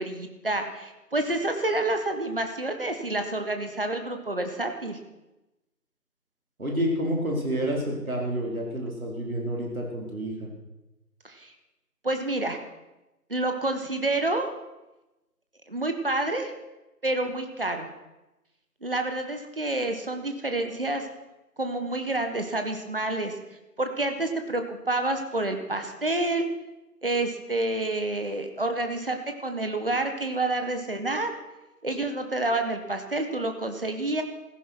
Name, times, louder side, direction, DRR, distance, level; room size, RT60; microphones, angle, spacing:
voice 1, 0.0-5.0 11.2-11.5 12.0-12.6 13.3-14.5 15.7-16.5 17.0-17.9 18.8-21.1 21.6-23.3 23.8-26.5 27.0-31.3 31.8-34.2, right 2 dB, 35° right, 6 dB, 1.5 m, -28 dB
voice 2, 6.6-10.5, equal, 60° right, -1 dB, 4.8 m, -29 dB
16.0 x 14.0 x 6.0 m, 1.0 s
figure-of-eight pair, 165°, 48 cm